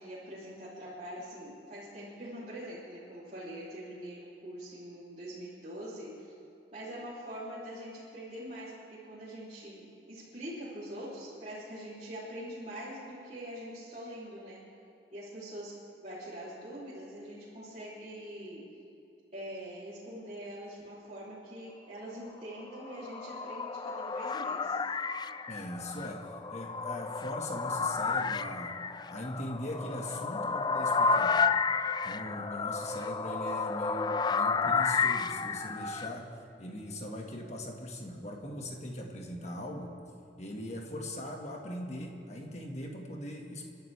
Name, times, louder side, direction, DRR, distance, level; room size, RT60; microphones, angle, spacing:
voice 1, 0.0-6.3 6.7-14.6 15.1-15.7 16.0-18.6 19.3-24.8, equal, 40° right, -12 dB, 3.3 m, -43 dB
sound 1, 22.7-36.1, left 5 dB, 25° left, 0.3 m, -31 dB
voice 2, 25.5-28.8 29.1-31.4 32.0-36.3 36.6-39.9 40.4-43.7, left 1 dB, 40° left, 1 dB, 1.9 m, -40 dB
30.0 x 12.0 x 3.5 m, 2.7 s
head